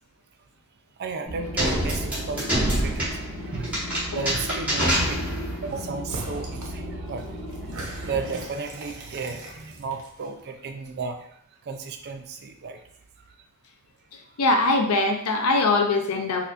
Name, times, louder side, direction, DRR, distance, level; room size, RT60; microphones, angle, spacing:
voice 1, 1.0-3.8 4.1-5.2 5.6-7.3 7.6-7.7 8.0-11.2 11.7-12.8, right 4 dB, 50° right, 5 dB, 0.4 m, -34 dB
sound 1, 1.3-8.4, equal, 30° left, 1.2 m, -36 dB
sound 2, 1.6-5.7, equal, 5° right, 1.3 m, -26 dB
sound 3, 5.6-5.8 6.1-6.7 7.1-10.4, right 1 dB, 70° right, 0.7 m, -40 dB
voice 2, 14.4-16.5, left 2 dB, 80° left, 4 dB, 0.6 m, -22 dB
4.2 x 2.7 x 2.5 m, 0.71 s
head